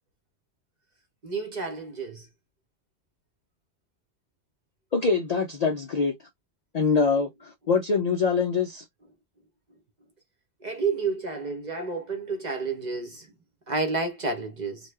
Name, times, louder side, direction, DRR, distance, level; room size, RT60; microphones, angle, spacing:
voice 1, 1.2-2.2 10.6-13.3 13.7-14.8, right 4 dB, 40° right, 0.8 m, -30 dB
voice 2, 4.9-6.1 6.7-8.8, left 5 dB, 70° left, 0.3 m, -24 dB
3.0 x 2.2 x 3.2 m
omnidirectional pair, 1.4 m